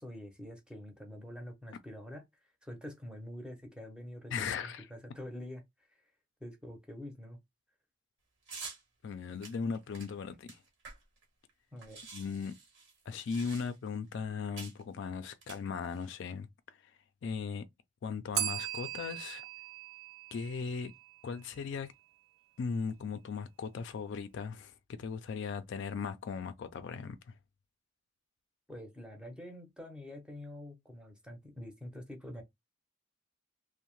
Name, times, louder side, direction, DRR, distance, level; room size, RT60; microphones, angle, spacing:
voice 1, 0.0-2.2 2.6-5.6 5.9-6.0 6.4-7.4 11.7-12.1 28.7-32.4, left 1 dB, 5° right, 0.6 m, -46 dB
voice 2, 4.3-4.8 9.0-10.6 12.1-12.5 13.1-16.5 17.2-17.7 18.0-19.4 20.3-20.9 21.2-21.9 22.6-27.2, left 5 dB, 60° left, 0.3 m, -37 dB
sound 1, 8.5-8.8 9.4-11.2 11.5-11.6 11.8-13.9 14.6-14.8 15.4-16.1, right 4 dB, 55° right, 1.1 m, -48 dB
Bell, 18.3-21.2, right 11 dB, 90° right, 0.4 m, -38 dB
2.7 x 2.1 x 2.9 m
head